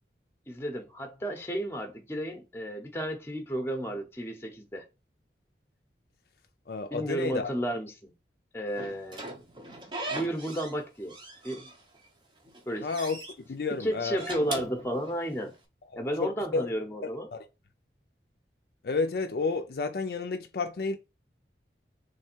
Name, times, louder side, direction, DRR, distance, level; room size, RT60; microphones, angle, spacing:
voice 1, 0.5-4.8 6.9-8.1 8.5-9.3 10.1-11.1 11.4-11.7 12.7-12.9 13.7-15.5 15.9-17.3, right 1 dB, 15° left, 0.8 m, -33 dB
voice 2, 6.7-7.5 12.8-13.2 13.5-14.2 15.9-16.7 17.3-17.4 18.8-21.0, left 4 dB, 55° left, 0.4 m, -31 dB
Slam / Squeak, 8.8-10.8 11.1-12.1 12.4-13.3 14.0-15.5, right 2 dB, 25° right, 0.7 m, -39 dB
3.4 x 3.2 x 4.4 m
head